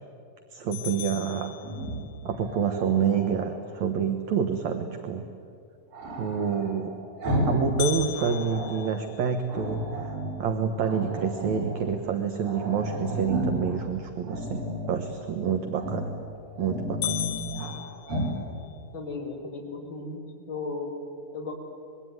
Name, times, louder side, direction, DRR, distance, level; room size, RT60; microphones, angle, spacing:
voice 1, 0.5-1.5 2.3-5.2 6.2-6.9 7.5-16.1 16.6-17.3, right 6 dB, 65° right, 6 dB, 2.3 m, -28 dB
sound 1, 0.7-2.3 7.8-10.0 10.5-10.6 11.1-11.2 11.8-12.1 15.8-16.2 16.6-16.7 17.0-18.8, left 11 dB, 70° left, 4.1 m, -37 dB
Growling, 1.6-3.6 5.9-7.7 8.0-8.9 9.5-10.4 10.8-11.8 12.1-12.2 12.4-13.8 14.2-15.0 15.7-16.2 16.5-17.7 18.1-18.4, equal, 85° right, 7.7 m, -33 dB
voice 2, 18.9-20.9 21.3-21.5, left 3 dB, 35° left, -3 dB, 5.5 m, -35 dB
25.5 x 22.5 x 9.5 m, 2.5 s
omnidirectional pair, 3.9 m